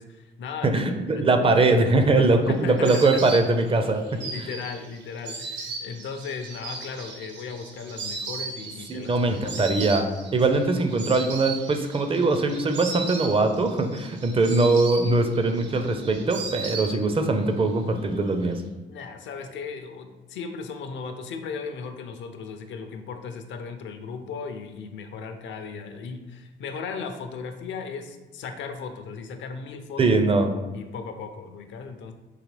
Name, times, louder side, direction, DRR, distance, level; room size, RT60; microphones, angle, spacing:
voice 1, 0.0-0.7 1.1-1.3 2.1-3.2 4.2-9.5 18.9-30.0 30.7-32.1, left 5 dB, 70° left, 7 dB, 0.5 m, -36 dB
voice 2, 0.6-4.0 4.4-4.5 8.9-18.6 30.0-30.5, right 3 dB, 30° right, 6 dB, 0.4 m, -22 dB
Insect, 1.7-17.4 17.7-18.5, right 3 dB, 65° right, 0.8 m, -37 dB
3.8 x 2.9 x 3.2 m, 1.3 s
cardioid pair, 90°, 20 cm